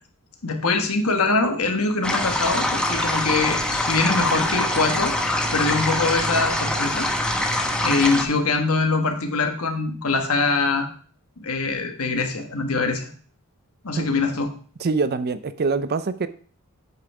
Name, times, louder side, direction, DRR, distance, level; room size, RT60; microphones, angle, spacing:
voice 1, 0.4-5.1 5.5-7.1 7.8-10.9 11.4-13.1 13.8-14.5, left 3 dB, 70° left, 5 dB, 1.5 m, -23 dB
sound 1, 2.0-8.2, left 1 dB, 5° left, 1.0 m, -24 dB
voice 2, 14.8-16.3, right 4 dB, 45° right, 13 dB, 0.5 m, -24 dB
8.5 x 5.6 x 4.7 m, 0.43 s
head